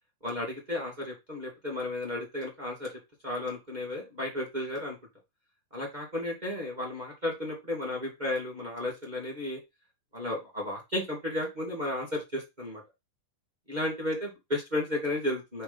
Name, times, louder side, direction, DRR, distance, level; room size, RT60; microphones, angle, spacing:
voice 1, 0.2-2.9 3.2-5.0 5.7-9.6 10.1-12.8 13.7-15.6, left 1 dB, 20° right, -1 dB, 1.1 m, -33 dB
5.6 x 4.1 x 5.2 m, 0.22 s
omnidirectional pair, 4.3 m